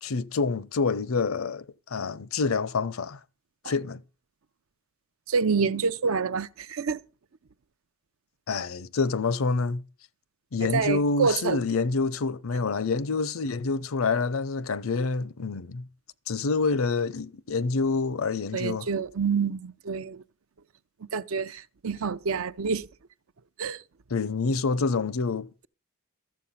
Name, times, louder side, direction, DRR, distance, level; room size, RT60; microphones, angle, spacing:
voice 1, 0.0-3.2 3.6-4.0 8.5-9.8 10.5-15.9 16.3-18.9 24.1-25.5, left 4 dB, 80° left, 0.6 m, -27 dB
voice 2, 5.3-7.0 10.7-11.6 18.5-20.2 21.1-22.9 23.6-23.8, right 5 dB, 75° right, 0.6 m, -27 dB
13.5 x 7.6 x 5.6 m
head